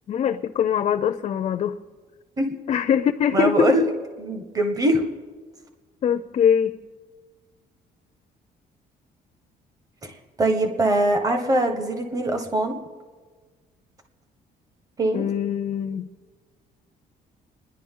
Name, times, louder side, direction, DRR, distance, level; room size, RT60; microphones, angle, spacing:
voice 1, 0.1-1.8 2.7-3.7 6.0-6.8 15.1-16.1, left 8 dB, 40° left, 9 dB, 0.5 m, -22 dB
voice 2, 3.3-3.8 4.2-5.0 10.0-10.1 10.4-12.7 15.0-15.2, right 1 dB, 20° right, 5 dB, 1.4 m, -22 dB
30.0 x 10.5 x 3.8 m, 1.5 s
cardioid pair, 165°, 17 cm